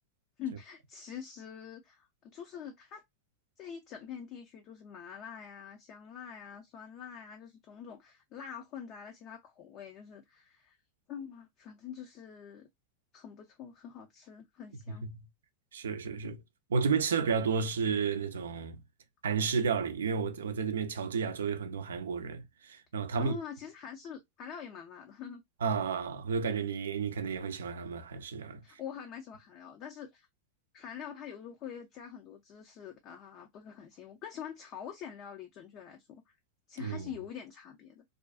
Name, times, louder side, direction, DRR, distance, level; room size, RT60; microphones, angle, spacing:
voice 1, 0.4-3.0 3.6-10.8 11.1-12.7 13.1-15.0 23.1-25.4 28.6-30.3 30.7-36.3 36.7-38.0, left 8 dB, 45° left, 0.5 m, -45 dB
voice 2, 14.9-15.3 15.7-16.4 16.7-18.8 19.2-23.4 25.6-28.6 36.8-37.1, right 5 dB, 90° right, 0.4 m, -32 dB
2.4 x 2.3 x 2.3 m
hypercardioid pair, 110°, 0 cm